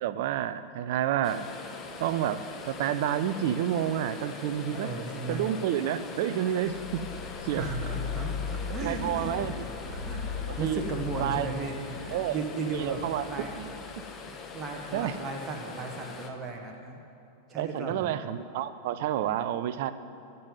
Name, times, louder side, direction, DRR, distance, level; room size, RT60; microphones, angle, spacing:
voice 1, 0.0-1.5 2.0-4.9 5.3-7.1 7.4-7.6 8.8-9.5 10.5-10.8 11.2-11.5 12.1-12.4 12.7-13.2 13.6-13.8 14.9-15.1 17.6-19.9, right 11 dB, 50° right, 13 dB, 0.5 m, -29 dB
sound 1, 1.2-16.3, left 4 dB, 25° left, 1.0 m, -43 dB
voice 2, 4.7-5.4 7.5-13.5 14.3-17.0 17.5-18.1, right 3 dB, 20° right, 1 dB, 1.4 m, -36 dB
sound 2, 6.6-15.0, left 6 dB, 40° left, 1.3 m, -38 dB
15.0 x 5.5 x 9.2 m, 2.5 s
figure-of-eight pair, 90°, 0 cm